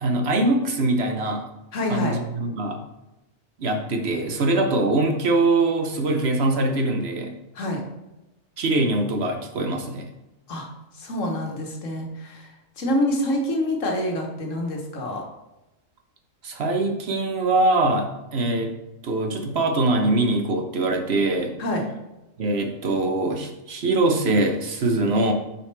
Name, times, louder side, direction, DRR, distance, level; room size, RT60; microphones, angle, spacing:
voice 1, 0.0-1.4 1.9-2.8 3.6-7.3 8.6-10.1 16.4-18.7 19.0-21.5 22.4-25.3, right 2 dB, 60° right, 4 dB, 0.9 m, -23 dB
voice 2, 1.7-2.2 7.5-7.8 10.5-10.7 10.9-12.5 12.8-15.2 21.6-21.8, left 1 dB, 70° left, 2 dB, 1.5 m, -26 dB
6.3 x 5.7 x 3.3 m, 0.98 s
omnidirectional pair, 1.4 m